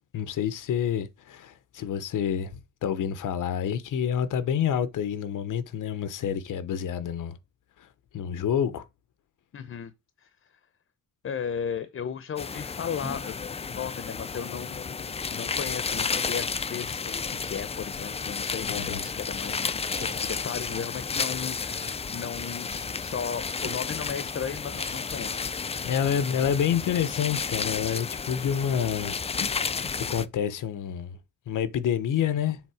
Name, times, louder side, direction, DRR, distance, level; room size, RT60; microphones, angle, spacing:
voice 1, 0.1-7.4 7.8-7.9 8.1-8.8 18.7-19.0 25.8-29.2 30.1-31.2 31.5-32.6, left 8 dB, 85° left, 0.9 m, -28 dB
voice 2, 9.5-9.9 10.2-10.6 11.2-25.5 29.4-29.5 29.8-30.0, left 7 dB, 45° left, 0.7 m, -36 dB
sound 1, 12.4-30.3, left 5 dB, 20° left, 0.3 m, -32 dB
sound 2, 19.9-21.1 21.7-22.0 22.6-23.1 23.5-24.4 24.7-25.3, right 4 dB, 25° right, 0.8 m, -47 dB
7.3 x 3.7 x 4.8 m
wide cardioid pair, 140°, 31 cm